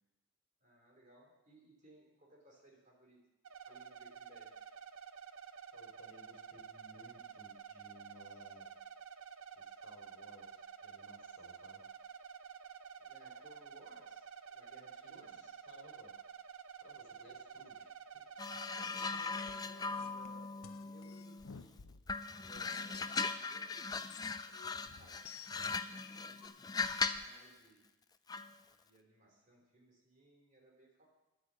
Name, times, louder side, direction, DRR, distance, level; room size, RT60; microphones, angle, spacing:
voice 1, 0.6-3.2 3.6-4.6 13.0-15.5 18.7-21.7 22.3-24.0 24.5-26.8 27.2-27.8 28.7-31.0, right 1 dB, 35° right, -1 dB, 3.1 m, -63 dB
sound 1, 3.4-18.9, right 7 dB, 70° right, 0.6 m, -51 dB
voice 2, 5.7-8.7 9.5-11.9 15.0-16.2 16.8-18.3, left 1 dB, 55° left, 1 dB, 2.6 m, -60 dB
sound 2, 18.4-21.6 22.1-27.3 28.3-28.5, left 4 dB, 20° left, 0.3 m, -39 dB
sound 3, 19.5-22.2 22.6-23.1 23.7-26.5, left 7 dB, 80° left, 0.6 m, -55 dB
10.5 x 8.3 x 7.4 m, 1.0 s
head